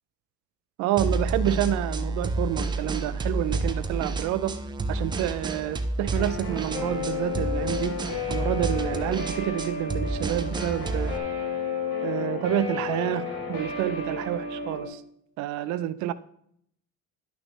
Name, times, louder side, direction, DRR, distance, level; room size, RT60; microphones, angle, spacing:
voice 1, 0.8-4.6 4.9-8.0 8.3-11.2 12.0-15.0 15.4-16.1, right 13 dB, 75° right, 0.5 m, -28 dB
sound 1, 1.0-11.2, right 2 dB, 15° right, 0.4 m, -30 dB
Guitar, 6.2-14.9, left 5 dB, 50° left, 3.2 m, -32 dB
11.0 x 6.0 x 3.2 m
cardioid pair, 160°, 29 cm